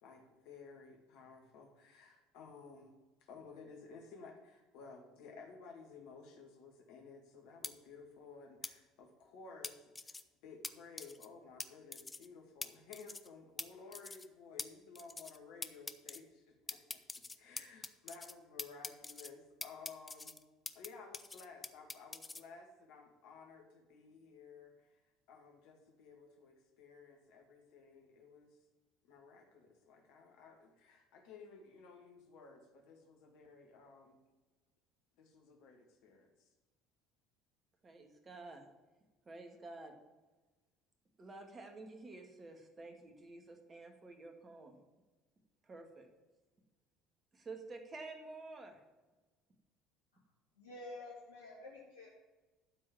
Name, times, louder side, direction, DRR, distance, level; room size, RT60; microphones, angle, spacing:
voice 1, 0.0-2.9 3.2-17.0 17.3-20.4 20.7-25.0 25.3-28.5 29.0-34.2 35.2-36.5, left 4 dB, 65° left, 2 dB, 2.2 m, -55 dB
sound 1, 7.6-7.7 8.6-8.7 9.6-10.2 10.6-10.7 11.0-11.3 11.6-11.7 11.9-12.3 12.6-12.7 12.9-13.3 13.6-13.7 13.9-14.3 14.6-14.7 14.9-15.4 15.6-16.2 16.7-18.3 18.6-19.3 19.6-20.9 21.1-22.4, left 3 dB, 20° left, 0.7 m, -44 dB
voice 2, 37.8-38.6 39.3-39.9 41.2-44.8 45.6-46.1 47.3-48.8, right 3 dB, 30° right, 4 dB, 2.2 m, -50 dB
voice 3, 50.6-52.1, left 2 dB, 85° left, -5 dB, 1.7 m, -49 dB
12.5 x 4.7 x 7.5 m, 1.2 s
hypercardioid pair, 65°, 0 cm